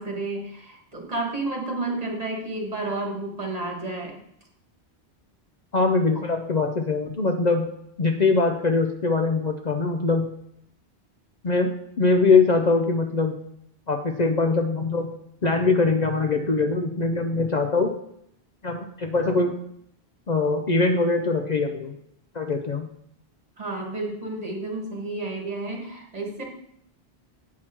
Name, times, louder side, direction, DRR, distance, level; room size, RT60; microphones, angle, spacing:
voice 1, 0.0-4.1 23.6-26.4, right 2 dB, 35° right, 0 dB, 1.6 m, -31 dB
voice 2, 5.7-7.7 8.0-10.3 11.4-11.7 12.0-13.4 13.9-15.1 15.4-17.9 18.6-19.6 20.3-22.0 22.3-22.9, left 3 dB, 45° left, 4 dB, 0.7 m, -22 dB
8.4 x 6.0 x 4.4 m, 0.74 s
omnidirectional pair, 1.1 m